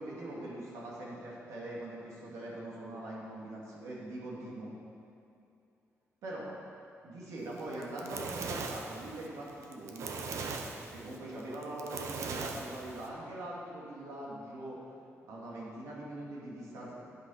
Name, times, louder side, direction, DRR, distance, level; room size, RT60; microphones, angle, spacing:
voice 1, 0.0-4.7 6.2-6.5 7.0-10.1 10.9-14.8 15.3-16.9, right 1 dB, 90° right, -5 dB, 2.7 m, -42 dB
Fire, 7.6-13.1, right 4 dB, 70° right, 1.0 m, -39 dB
11.5 x 7.9 x 5.8 m, 2.7 s
cardioid pair, 135°, 5 cm